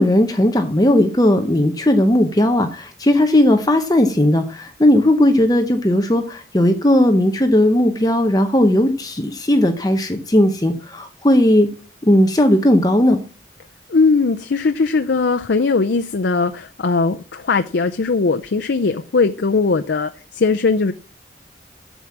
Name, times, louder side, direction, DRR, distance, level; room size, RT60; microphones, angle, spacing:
voice 1, 0.0-11.7 12.0-13.2, left 1 dB, 20° left, 0.9 m, -16 dB
voice 2, 13.9-20.9, left 4 dB, 75° left, 0.5 m, -19 dB
8.0 x 7.4 x 7.2 m
head